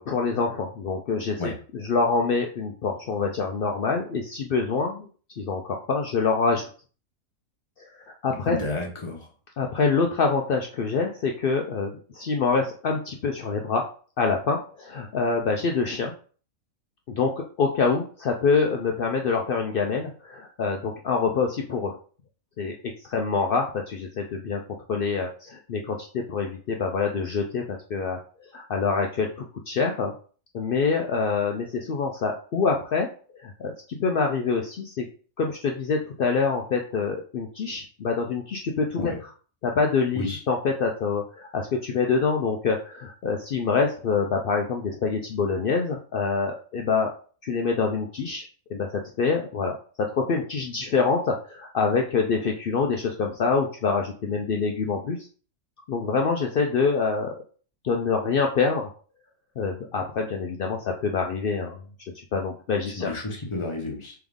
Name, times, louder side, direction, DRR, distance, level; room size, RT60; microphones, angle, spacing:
voice 1, 0.0-5.1 5.4-6.7 8.2-8.6 9.6-13.9 14.2-16.1 17.1-21.9 22.6-22.7 23.0-24.6 24.9-28.2 28.5-30.1 30.5-33.1 33.4-35.1 35.4-39.1 39.6-47.1 47.4-49.8 50.2-55.2 55.9-57.3 57.8-58.9 59.6-61.8 62.3-63.1, left 4 dB, 75° left, 2 dB, 0.5 m, -26 dB
voice 2, 8.5-9.2 39.0-39.2 40.1-40.4 63.0-64.1, left 2 dB, 25° left, 0 dB, 0.9 m, -30 dB
3.6 x 3.4 x 3.5 m, 0.41 s
omnidirectional pair, 1.5 m